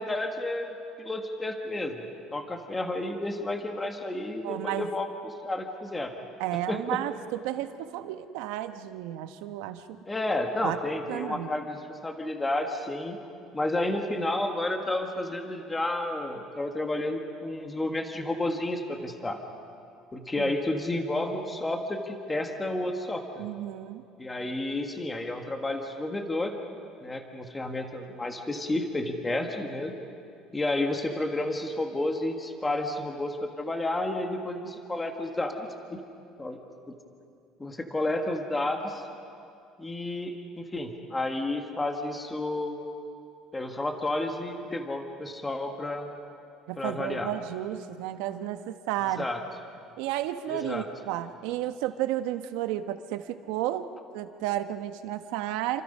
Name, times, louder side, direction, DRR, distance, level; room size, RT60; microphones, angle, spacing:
voice 1, 0.0-6.1 6.7-7.0 10.0-13.2 13.5-19.4 20.1-23.4 24.2-26.5 27.0-29.9 30.5-36.0 36.4-36.6 36.9-37.0 37.6-39.0 39.8-42.8 43.5-46.1 46.8-47.3 49.2-49.4 50.5-50.9, left 2 dB, 10° left, 4 dB, 1.5 m, -31 dB
voice 2, 4.4-4.9 6.4-7.2 7.4-10.0 10.6-10.8 11.1-11.6 20.4-20.5 23.4-24.0 46.7-49.2 50.0-55.8, right 13 dB, 85° right, 9 dB, 1.2 m, -32 dB
28.5 x 26.0 x 5.5 m, 2.5 s
cardioid pair, 175°, 0 cm